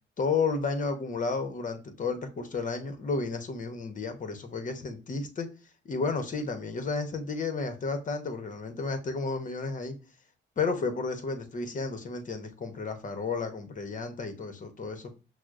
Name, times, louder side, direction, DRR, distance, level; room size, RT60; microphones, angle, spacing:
voice 1, 0.2-5.5 5.8-9.9 10.6-15.2, left 4 dB, 40° left, 0.9 m, -32 dB
6.0 x 2.1 x 2.4 m
cardioid pair, 90°, 20 cm